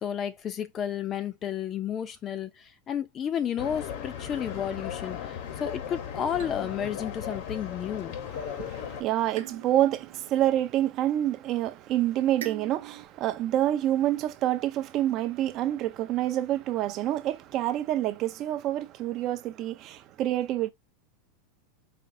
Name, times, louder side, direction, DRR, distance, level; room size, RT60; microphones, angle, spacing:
voice 1, 0.0-8.1, left 9 dB, 30° left, 0.5 m, -32 dB
sound 1, 3.6-9.0, left 8 dB, 60° left, 0.9 m, -37 dB
sound 2, 6.4-8.0 9.3-11.5 12.4-13.1, right 10 dB, 90° right, 0.7 m, -45 dB
voice 2, 8.5-20.7, right 13 dB, 40° right, 0.5 m, -27 dB
4.3 x 2.7 x 2.6 m
supercardioid pair, 140°, 0 cm